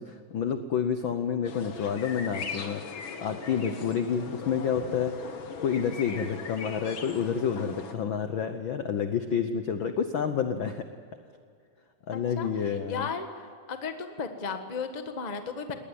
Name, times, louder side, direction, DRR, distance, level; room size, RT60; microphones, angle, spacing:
voice 1, 0.0-5.1 5.6-10.9 12.1-13.1, left 7 dB, 65° left, 8 dB, 1.2 m, -29 dB
sound 1, 1.4-7.9, left 5 dB, 50° left, 2.0 m, -39 dB
voice 2, 12.1-12.5 12.9-15.7, left 5 dB, 25° left, 6 dB, 0.9 m, -35 dB
20.0 x 19.0 x 9.3 m, 2.2 s
omnidirectional pair, 3.3 m